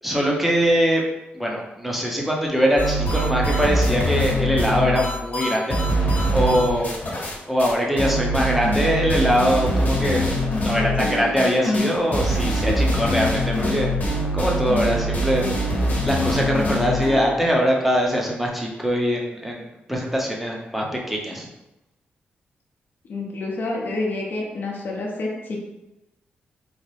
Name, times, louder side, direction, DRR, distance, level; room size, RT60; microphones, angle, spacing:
voice 1, 0.0-1.1 1.3-5.8 6.0-7.0 7.5-10.3 10.6-13.9 14.3-15.5 15.8-21.5, equal, 5° right, -2 dB, 0.9 m, -22 dB
sound 1, 2.8-7.3 7.6-7.7 8.0-17.2, equal, 45° left, 1.1 m, -23 dB
voice 2, 10.8-11.3 12.6-12.7 23.1-25.6, left 2 dB, 60° left, -2 dB, 0.8 m, -28 dB
4.0 x 2.1 x 3.3 m, 0.95 s
cardioid pair, 75°, 4 cm